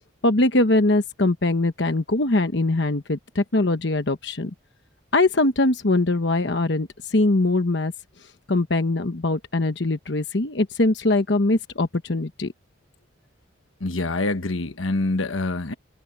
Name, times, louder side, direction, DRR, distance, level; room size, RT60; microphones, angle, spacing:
voice 1, 0.2-4.5 5.1-7.9 8.5-12.5, left 2 dB, 60° left, 1.1 m, -22 dB
voice 2, 13.8-15.7, left 2 dB, 85° left, 1.3 m, -25 dB
head